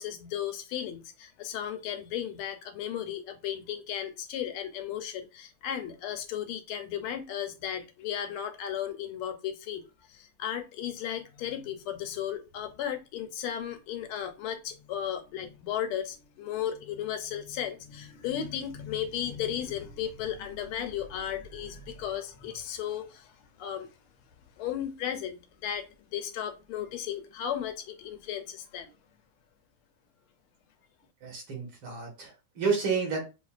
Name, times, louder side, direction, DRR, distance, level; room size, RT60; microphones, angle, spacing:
voice 1, 0.0-23.9 24.6-28.9, left 10 dB, 85° left, 1.6 m, -35 dB
voice 2, 31.2-33.2, right 5 dB, 65° right, 2.3 m, -30 dB
6.5 x 2.3 x 2.4 m
omnidirectional pair, 2.4 m